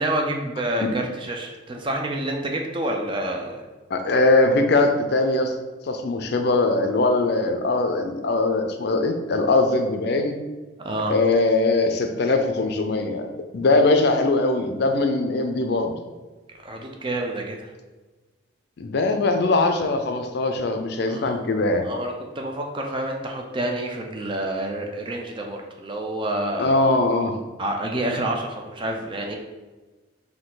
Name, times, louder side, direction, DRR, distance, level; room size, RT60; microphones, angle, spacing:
voice 1, 0.0-3.6 10.8-11.2 16.6-17.7 21.1-21.4 21.8-26.8 27.6-29.3, right 1 dB, 25° right, 2 dB, 0.5 m, -28 dB
voice 2, 3.9-5.5 5.8-10.4 11.1-13.3 13.5-16.0 18.8-21.9 26.6-27.4, left 2 dB, 55° left, 6 dB, 0.5 m, -21 dB
4.4 x 2.7 x 3.8 m, 1.2 s
head